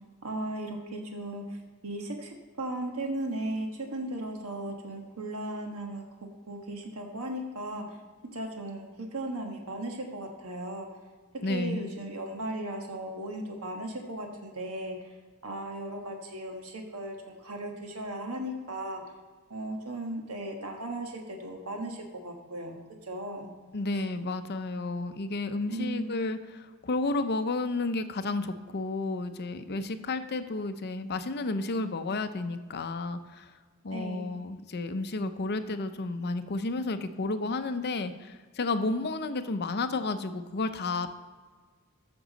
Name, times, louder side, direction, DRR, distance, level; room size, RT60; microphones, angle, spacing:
voice 1, 0.2-1.4 1.8-6.0 6.5-8.0 8.3-10.9 11.5-15.1 15.4-19.1 19.5-22.8 23.0-23.5 23.9-24.0 25.7-26.1 33.9-34.4, right 1 dB, 70° right, 2 dB, 1.3 m, -36 dB
voice 2, 11.4-11.9 23.7-33.5 33.8-41.1, left 2 dB, 45° left, 10 dB, 0.6 m, -32 dB
14.5 x 6.1 x 4.0 m, 1.5 s
head